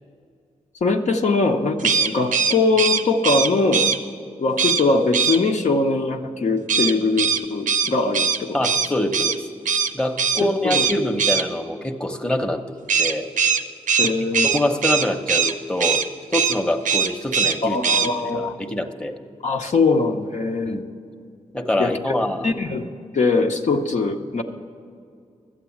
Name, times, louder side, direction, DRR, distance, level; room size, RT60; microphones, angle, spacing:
voice 1, 0.8-3.9 4.3-8.7 10.6-10.8 14.0-14.5 17.6-18.6 19.4-20.8 21.8-22.0 22.4-22.8 23.1-24.4, left 3 dB, 65° left, 2 dB, 1.0 m, -21 dB
sound 1, 1.8-4.0 4.6-4.8 5.1-5.4 6.7-9.4 9.7-9.9 10.2-10.4 10.7-11.4 12.9-15.5 15.8-16.1 16.3-16.6 16.8-17.6 17.8-18.1, right 6 dB, 85° right, 0.7 m, -20 dB
voice 2, 8.5-9.5 9.9-12.6 13.0-13.3 14.0-14.1 14.4-16.0 16.3-19.2 20.7-20.8 21.5-22.5, left 1 dB, 5° left, 4 dB, 0.9 m, -25 dB
12.5 x 8.3 x 7.2 m, 2.3 s
cardioid pair, 60°, 13 cm